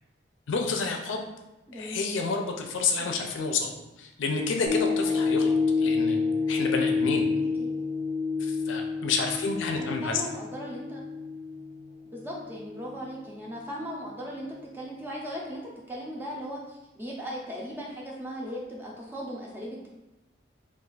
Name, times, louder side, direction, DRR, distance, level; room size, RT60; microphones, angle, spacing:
voice 1, 0.5-1.3 1.7-6.2 6.5-7.2 8.4-10.2, left 4 dB, 90° left, 3 dB, 0.5 m, -29 dB
voice 2, 1.7-2.0 3.0-3.2 7.6-7.7 9.7-11.0 12.0-15.6 15.9-19.9, equal, 10° right, -3 dB, 0.5 m, -38 dB
sound 1, 4.7-13.1 13.6-13.7, left 4 dB, 65° right, 0.7 m, -28 dB
2.4 x 2.3 x 3.9 m, 0.95 s
head